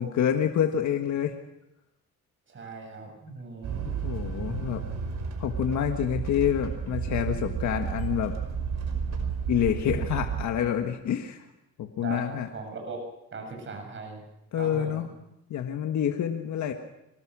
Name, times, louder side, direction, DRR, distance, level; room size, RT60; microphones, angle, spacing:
voice 1, 0.0-1.4 4.0-4.8 5.4-8.3 9.5-11.4 11.8-12.5 14.5-15.1 15.5-16.7, left 9 dB, 70° left, 5 dB, 1.6 m, -27 dB
voice 2, 2.5-4.0 12.0-13.0 13.3-14.2 14.6-15.1, right 3 dB, 40° right, 2 dB, 7.1 m, -39 dB
sound 1, 3.6-10.4, right 7 dB, 65° right, 5.5 m, -32 dB
25.0 x 19.0 x 6.2 m, 0.88 s
cardioid pair, 90°, 30 cm